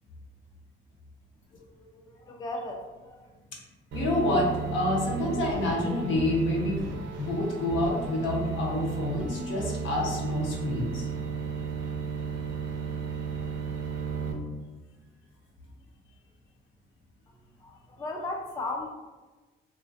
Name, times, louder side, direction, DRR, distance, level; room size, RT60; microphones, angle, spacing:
voice 1, 1.5-3.2 17.6-18.9, left 2 dB, 20° left, 2 dB, 0.3 m, -36 dB
voice 2, 3.9-6.8 7.2-11.1, left 1 dB, 75° left, -1 dB, 0.7 m, -28 dB
sound 1, 3.9-14.3, right 6 dB, 70° right, 0.5 m, -34 dB
2.3 x 2.2 x 2.4 m, 1.2 s
cardioid pair, 90°, 20 cm